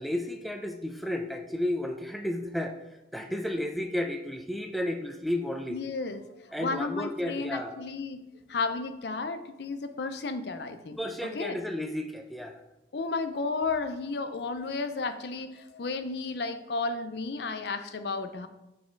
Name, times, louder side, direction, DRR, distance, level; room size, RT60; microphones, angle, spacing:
voice 1, 0.0-2.8 3.1-5.8 6.5-7.8 11.0-12.6, left 1 dB, ahead, 4 dB, 0.5 m, -32 dB
voice 2, 5.7-11.0 11.3-11.6 12.9-18.5, left 3 dB, 70° left, 9 dB, 0.5 m, -33 dB
7.4 x 4.3 x 4.6 m, 0.97 s
head